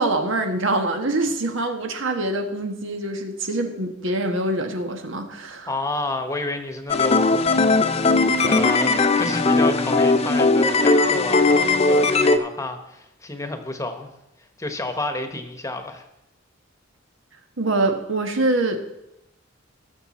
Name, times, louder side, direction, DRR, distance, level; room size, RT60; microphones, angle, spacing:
voice 1, 0.0-5.7 8.3-8.5 17.6-18.8, right 2 dB, 75° right, 5 dB, 1.5 m, -24 dB
voice 2, 5.7-7.4 8.5-14.1 14.6-16.0, left 2 dB, 15° left, 7 dB, 1.1 m, -30 dB
sound 1, 6.9-12.4, left 3 dB, 30° left, 0.5 m, -18 dB
20.5 x 6.8 x 4.2 m, 0.89 s
head